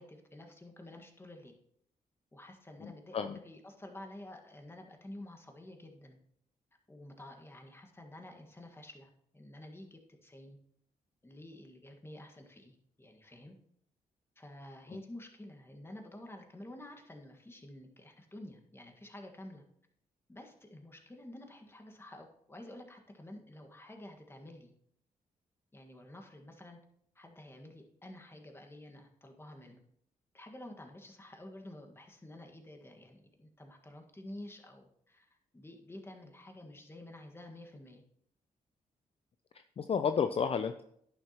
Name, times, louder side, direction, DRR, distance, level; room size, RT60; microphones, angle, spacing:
voice 1, 0.0-1.6 2.3-6.2 6.9-10.6 11.2-13.6 14.4-19.6 20.3-24.7 25.7-26.8 27.2-29.8 30.3-38.0, left 1 dB, 15° left, 3 dB, 1.6 m, -50 dB
voice 2, 2.8-3.4 14.9-15.0 39.5-40.8, left 6 dB, 45° left, 9 dB, 0.5 m, -32 dB
11.0 x 9.5 x 3.0 m, 0.70 s
cardioid pair, 85°, 14 cm